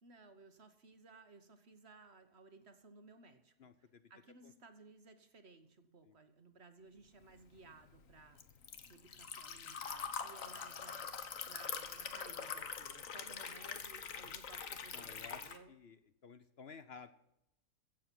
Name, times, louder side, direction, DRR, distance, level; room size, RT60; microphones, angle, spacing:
voice 1, 0.0-8.4 8.8-15.7, right 3 dB, 50° right, 8 dB, 1.4 m, -59 dB
voice 2, 3.6-4.1 4.4-4.5 6.0-6.2 14.2-14.3 14.9-15.4 15.7-17.1, left 5 dB, 55° left, 11 dB, 1.0 m, -54 dB
Liquid, 7.3-15.6, left 6 dB, 70° left, 1.5 m, -44 dB
15.5 x 7.5 x 6.1 m, 0.82 s
omnidirectional pair, 1.4 m